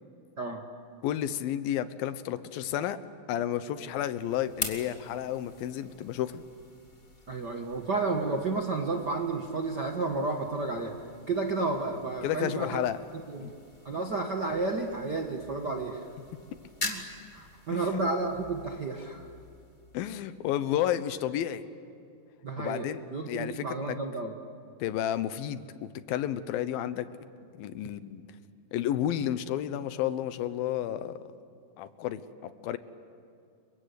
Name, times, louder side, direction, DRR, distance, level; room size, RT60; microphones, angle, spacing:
voice 1, 1.0-3.0 3.3-6.4 12.2-13.0 13.4-13.5 17.7-18.0 19.9-21.6 22.6-23.0 23.3-24.0 24.8-27.1 27.6-28.2 28.7-31.2 31.8-32.8, left 11 dB, 85° left, 13 dB, 2.8 m, -31 dB
sound 1, 3.7-20.7, left 2 dB, 15° left, 2.1 m, -45 dB
voice 2, 7.3-10.9 11.3-12.8 13.3-13.5 13.8-16.1 16.8-17.1 17.3-19.3 22.4-24.3, right 3 dB, 55° right, 3 dB, 1.2 m, -31 dB
30.0 x 23.5 x 8.4 m, 2.5 s
omnidirectional pair, 4.1 m